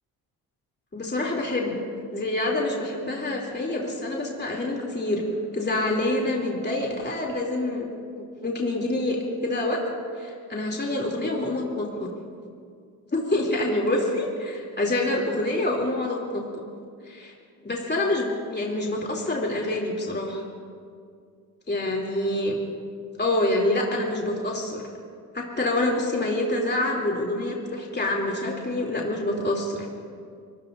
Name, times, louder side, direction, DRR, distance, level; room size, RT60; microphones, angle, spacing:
voice 1, 0.9-1.8 2.1-5.2 5.5-7.9 8.2-9.8 10.1-12.1 13.1-16.4 17.0-17.3 17.6-20.4 21.7-22.5 23.2-24.8 25.3-29.9, left 1 dB, 25° left, -1 dB, 3.2 m, -26 dB
25.5 x 18.0 x 2.7 m, 2.2 s
hypercardioid pair, 50°, 43 cm